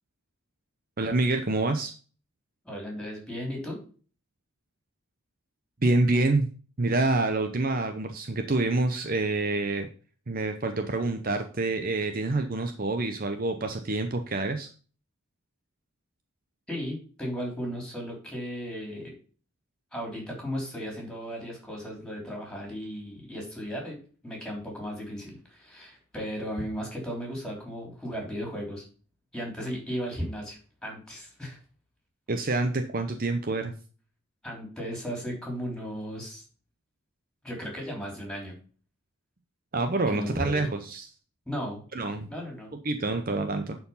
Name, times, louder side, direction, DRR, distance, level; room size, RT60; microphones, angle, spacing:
voice 1, 1.0-1.9 5.8-6.5 6.8-9.9 10.3-14.7 32.3-33.7 39.7-41.1 41.9-42.3 42.8-43.8, right 2 dB, 40° right, 7 dB, 0.7 m, -27 dB
voice 2, 2.6-3.8 16.7-19.1 19.9-24.0 24.2-28.9 29.3-31.6 34.4-36.4 37.4-38.5 40.1-40.6 41.5-41.8 42.3-42.7, equal, 5° left, 0 dB, 3.3 m, -35 dB
10.5 x 4.7 x 5.5 m, 0.40 s
head